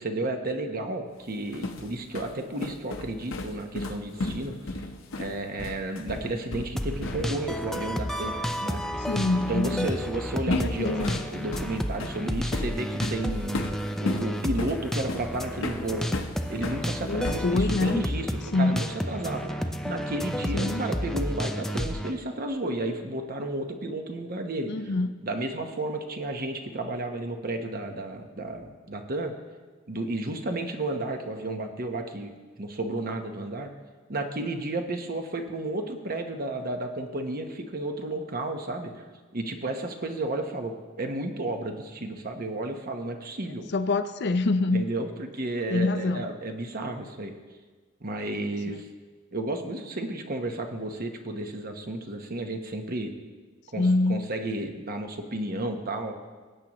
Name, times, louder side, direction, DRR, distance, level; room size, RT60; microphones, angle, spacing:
voice 1, 0.0-4.6 5.2-8.3 8.6-8.8 9.3-13.6 14.0-16.1 16.5-24.9 25.2-29.3 29.9-32.3 32.6-33.7 34.1-38.9 39.3-43.7 44.7-47.3 48.0-48.8 49.3-53.1 53.7-56.1, right 2 dB, 45° right, 5 dB, 1.0 m, -32 dB
sound 1, 1.3-7.5 7.7-8.0 9.9-10.1 10.5-16.8 17.2-18.2, left 2 dB, 70° left, 0.9 m, -34 dB
sound 2, 6.8-22.1, equal, ahead, 0.5 m, -31 dB
voice 2, 9.1-9.9 10.5-11.2 17.0-18.0 18.5-18.8 20.5-20.8 24.7-25.1 43.7-44.8 45.7-46.3 48.7-48.8 53.8-54.3, left 2 dB, 55° left, 11 dB, 0.5 m, -25 dB
19.0 x 8.6 x 3.0 m, 1.4 s
head